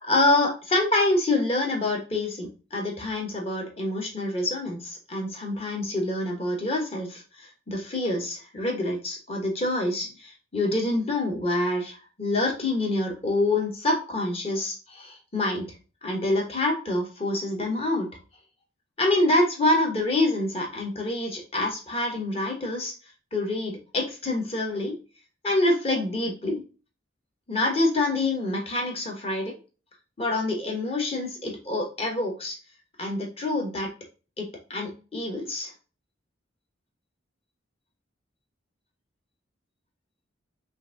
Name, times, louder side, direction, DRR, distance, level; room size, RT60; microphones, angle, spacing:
voice 1, 0.0-15.7 16.0-18.1 19.0-22.9 23.3-24.9 25.4-26.6 27.5-29.5 30.2-32.6 33.0-33.9 34.4-35.7, left 2 dB, 30° left, 1 dB, 1.0 m, -26 dB
5.6 x 2.6 x 2.6 m, 0.34 s
head